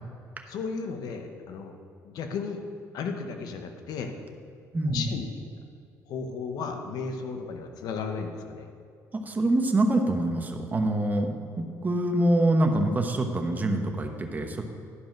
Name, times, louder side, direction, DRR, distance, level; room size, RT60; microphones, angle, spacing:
voice 1, 0.5-1.7 2.0-2.6 2.9-4.1 4.9-5.3 6.1-8.7, left 5 dB, 75° left, 5 dB, 1.0 m, -34 dB
voice 2, 4.7-5.0 9.2-14.6, right 1 dB, 25° right, 4 dB, 1.1 m, -25 dB
11.5 x 5.1 x 6.0 m, 2.4 s
cardioid pair, 95°, 7 cm